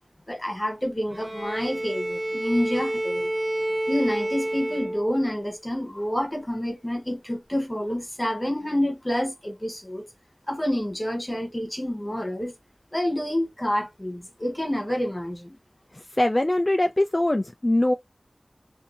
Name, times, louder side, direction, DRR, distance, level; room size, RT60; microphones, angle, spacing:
voice 1, 0.3-3.3 3.9-10.0 10.5-12.5 12.9-15.6, left 1 dB, 25° left, 1.0 m, -28 dB
Bowed string instrument, 1.1-5.5, right 1 dB, 55° right, 0.6 m, -29 dB
voice 2, 16.2-17.9, left 1 dB, 40° left, 0.3 m, -22 dB
2.6 x 2.6 x 2.4 m
wide cardioid pair, 40°, 0 cm